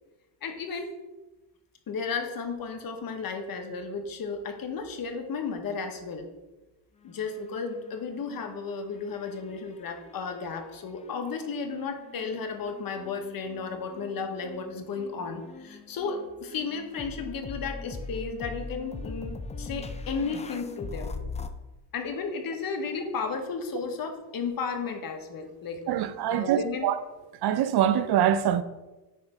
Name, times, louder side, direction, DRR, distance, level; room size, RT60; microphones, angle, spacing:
voice 1, 0.4-0.9 1.9-6.3 7.0-21.1 21.9-26.9, left 5 dB, 50° left, 1.2 m, -34 dB
sound 1, 7.0-8.6 8.9-10.3 11.0-21.5, left 3 dB, 15° left, 0.4 m, -41 dB
voice 2, 25.9-27.0 27.4-28.6, right 10 dB, 60° right, 0.6 m, -24 dB
9.3 x 3.3 x 6.0 m
cardioid pair, 115°, 45 cm